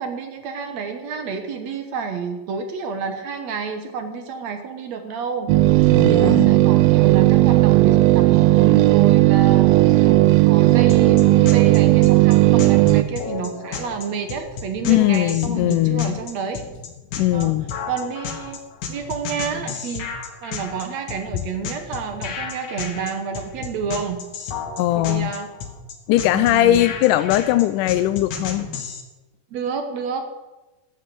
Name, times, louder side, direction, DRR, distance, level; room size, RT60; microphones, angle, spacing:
voice 1, 0.0-16.6 17.3-17.5 17.9-18.6 18.9-20.1 20.4-24.3 25.0-25.5 26.3-26.9 29.5-30.3, right 6 dB, 65° right, 7 dB, 1.9 m, -29 dB
sound 1, 5.5-13.0, right 17 dB, 85° right, 2.4 m, -14 dB
voice 2, 5.9-6.5 14.9-16.2 17.2-17.7 24.8-25.3 26.1-28.7, left 14 dB, 80° left, 11 dB, 1.9 m, -19 dB
sound 2, 10.9-29.0, left 6 dB, 60° left, 2.6 m, -32 dB
12.5 x 9.2 x 7.6 m, 1.1 s
omnidirectional pair, 4.1 m